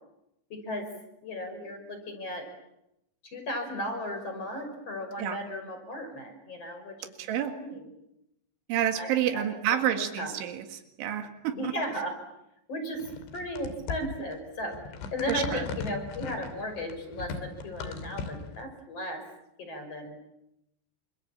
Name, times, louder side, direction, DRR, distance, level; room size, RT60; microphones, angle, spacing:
voice 1, 0.5-0.9 1.2-2.5 3.2-7.9 9.0-9.4 9.9-10.3 11.5-12.2 12.7-13.0 13.3-14.8 15.1-19.2 19.6-20.2, equal, 30° left, 5 dB, 6.3 m, -35 dB
voice 2, 7.2-7.5 8.7-10.7 11.0-11.7 15.3-15.6, right 10 dB, 90° right, 6 dB, 4.3 m, -29 dB
sound 1, 13.0-18.6, left 5 dB, 80° left, 5.1 m, -38 dB
29.5 x 26.0 x 7.4 m, 0.85 s
omnidirectional pair, 5.3 m